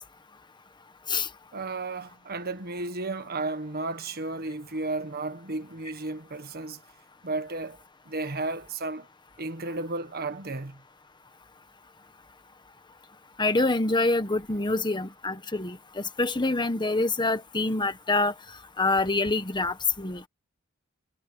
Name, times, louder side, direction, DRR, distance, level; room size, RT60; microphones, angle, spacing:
voice 1, 1.5-6.8 7.2-7.8 8.1-9.1 9.4-10.8, right 2 dB, 45° right, 1.5 m, -33 dB
voice 2, 13.4-18.3 18.8-20.2, left 2 dB, 20° left, 1.3 m, -26 dB
head